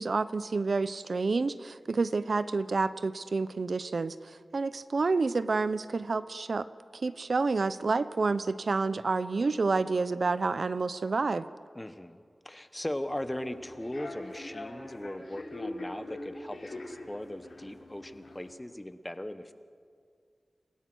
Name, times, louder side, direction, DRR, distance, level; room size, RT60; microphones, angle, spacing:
voice 1, 0.0-6.7 6.9-11.5, right 4 dB, 60° right, 14 dB, 0.6 m, -29 dB
voice 2, 11.7-19.5, left 1 dB, 15° left, 11 dB, 1.0 m, -39 dB
Human voice / Subway metro underground, 13.0-18.5, left 2 dB, 75° left, 5.5 m, -43 dB
28.0 x 16.5 x 6.3 m, 2.2 s
wide cardioid pair, 95°, 0 cm